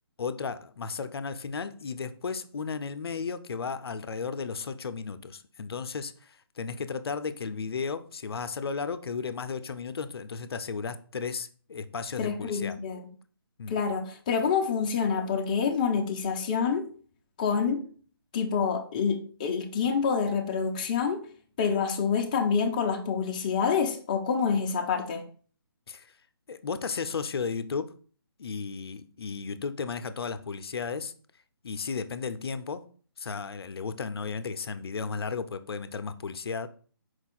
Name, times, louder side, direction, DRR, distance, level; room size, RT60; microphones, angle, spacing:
voice 1, 0.2-12.8 13.6-13.8 25.9-26.1 26.5-27.9 28.4-31.1 31.6-32.8 33.2-36.7, left 5 dB, 80° left, 0.4 m, -34 dB
voice 2, 12.2-13.1 13.7-16.9 17.4-17.8 18.3-21.2 21.6-25.2, left 6 dB, 20° left, 0.4 m, -27 dB
4.5 x 2.3 x 4.2 m
hypercardioid pair, 160°, 13 cm